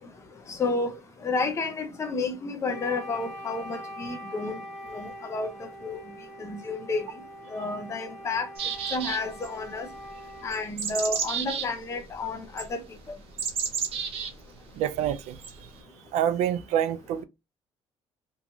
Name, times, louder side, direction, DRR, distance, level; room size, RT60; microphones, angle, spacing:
voice 1, 0.5-0.9 1.2-4.6 4.9-6.0 6.4-7.1 7.5-8.5 8.9-9.9 10.4-12.8, left 3 dB, 25° left, 0.5 m, -31 dB
Wind instrument woodwind instrument, 2.7-10.7, equal, 5° left, 0.8 m, -43 dB
sound 1, 8.6-9.5 10.5-11.7 12.6-12.7 13.4-14.3 15.4-15.5, right 6 dB, 55° right, 0.8 m, -31 dB
voice 2, 14.8-15.4 16.1-17.2, right 10 dB, 85° right, 0.4 m, -26 dB
2.9 x 2.3 x 2.6 m
cardioid pair, 125°, 11 cm